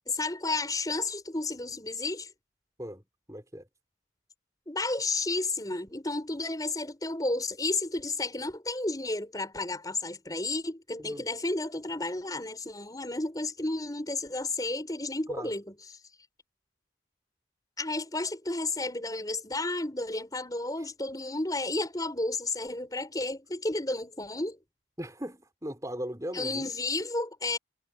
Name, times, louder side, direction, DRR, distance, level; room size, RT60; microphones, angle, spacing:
voice 1, 0.1-2.3 4.7-15.6 17.8-24.6 26.3-27.6, left 2 dB, 20° left, 5.1 m, -32 dB
voice 2, 2.8-3.7 11.0-11.2 15.3-15.5 25.0-26.7, equal, 15° right, 5.7 m, -38 dB
head